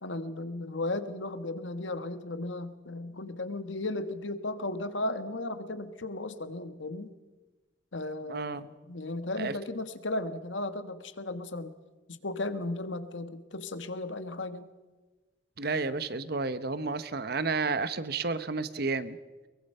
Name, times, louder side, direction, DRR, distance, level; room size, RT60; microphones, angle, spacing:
voice 1, 0.0-7.1 7.9-11.7 12.2-14.7, left 2 dB, 80° left, 10 dB, 1.5 m, -35 dB
voice 2, 8.3-8.7 9.4-9.5 15.6-19.2, right 4 dB, 55° right, 13 dB, 1.0 m, -31 dB
22.5 x 22.0 x 5.6 m, 1.2 s
head